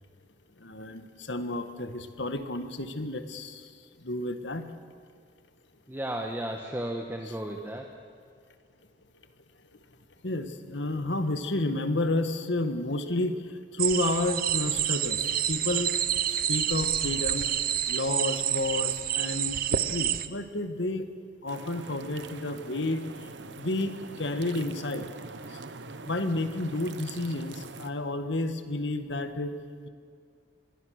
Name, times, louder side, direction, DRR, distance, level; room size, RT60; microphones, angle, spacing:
voice 1, 0.6-3.7 4.0-4.6 10.2-13.3 13.7-15.9 16.5-17.5 17.9-21.0 21.4-23.3 23.6-25.1 25.5-25.6 26.0-29.5, left 2 dB, 75° left, 9 dB, 1.6 m, -31 dB
voice 2, 5.9-7.9, right 1 dB, 10° right, 2 dB, 1.3 m, -34 dB
sound 1, 13.8-20.3, right 10 dB, 50° right, 0.8 m, -28 dB
sound 2, 21.5-27.9, right 3 dB, 75° right, 1.1 m, -43 dB
26.5 x 21.5 x 6.5 m, 2.1 s
head